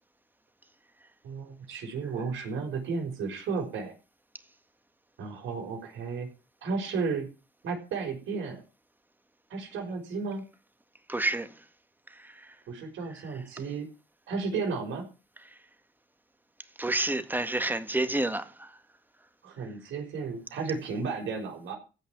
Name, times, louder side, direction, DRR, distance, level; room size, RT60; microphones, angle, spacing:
voice 1, 1.2-3.9 5.2-6.3 6.6-7.3 7.6-8.6 9.5-10.4 12.7-13.9 14.3-15.0 19.4-21.7, right 4 dB, 75° right, 5.9 m, -33 dB
voice 2, 11.1-11.5 12.1-12.5 16.8-18.8, right 2 dB, 10° right, 1.7 m, -29 dB
15.5 x 5.6 x 9.4 m
cardioid pair, 90°, 20 cm